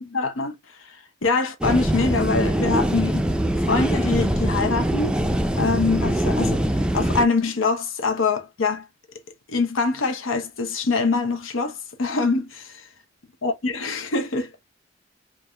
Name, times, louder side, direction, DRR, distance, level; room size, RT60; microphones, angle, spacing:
voice 1, 0.0-0.5 1.2-3.3 3.6-5.3 5.6-6.6 6.9-8.8 9.5-12.8 13.4-14.5, left 4 dB, 85° left, 0.8 m, -24 dB
sound 1, 1.6-7.3, right 1 dB, 5° right, 0.4 m, -23 dB
4.6 x 2.5 x 2.3 m
head